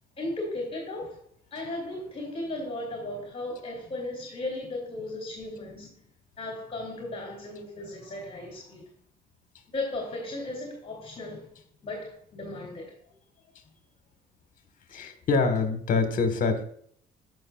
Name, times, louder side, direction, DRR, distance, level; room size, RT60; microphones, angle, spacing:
voice 1, 0.2-1.2 1.5-5.9 6.4-8.8 9.7-11.5 11.8-12.9, left 2 dB, 35° left, 0 dB, 2.5 m, -36 dB
voice 2, 14.9-16.6, left 4 dB, 50° left, 7 dB, 1.4 m, -25 dB
12.5 x 6.2 x 2.3 m, 0.65 s
cardioid pair, 110°, 17 cm